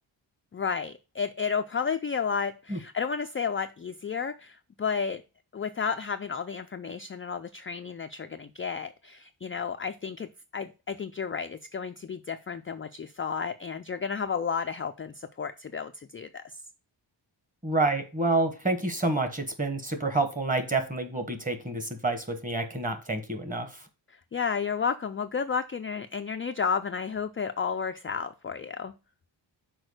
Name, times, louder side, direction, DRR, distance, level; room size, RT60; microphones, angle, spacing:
voice 1, 0.5-5.2 5.5-16.4 24.1-28.9, left 6 dB, 30° left, 0.3 m, -32 dB
voice 2, 17.6-23.7, right 2 dB, 15° right, 1.3 m, -28 dB
6.2 x 4.8 x 6.4 m
wide cardioid pair, 175°, 47 cm